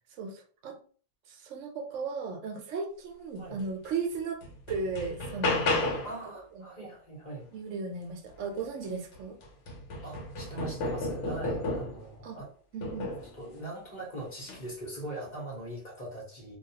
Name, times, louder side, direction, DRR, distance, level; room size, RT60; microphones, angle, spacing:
voice 1, 0.2-0.8 1.3-4.4 4.7-6.0 6.5-6.9 7.5-9.4 12.2-12.4 12.7-13.1, right 4 dB, 80° right, 4 dB, 0.9 m, -36 dB
sound 1, 3.8-3.9 4.4-6.2 8.6-8.7 9.1-12.1 12.8-13.3 14.4-14.6, left 2 dB, 70° left, 0.9 m, -32 dB
voice 2, 6.0-7.5 10.0-12.5 13.3-16.6, right 1 dB, 40° left, -3 dB, 0.9 m, -41 dB
2.3 x 2.3 x 2.7 m, 0.41 s
omnidirectional pair, 1.3 m